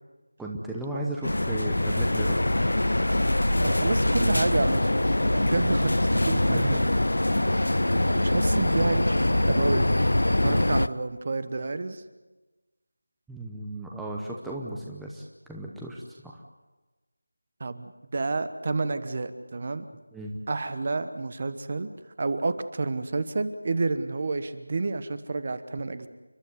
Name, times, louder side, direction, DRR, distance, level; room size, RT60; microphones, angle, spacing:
voice 1, 0.4-2.4 6.5-6.9 13.3-16.4 20.1-20.4, right 1 dB, ahead, -3 dB, 0.9 m, -35 dB
sound 1, 1.2-10.9, left 1 dB, 80° left, 0.7 m, -23 dB
voice 2, 3.6-6.9 7.4-9.9 10.4-12.0 17.6-19.9 20.5-21.9 22.2-26.1, right 3 dB, 30° right, 12 dB, 1.1 m, -30 dB
30.0 x 12.0 x 9.6 m, 1.2 s
figure-of-eight pair, 175°, 0 cm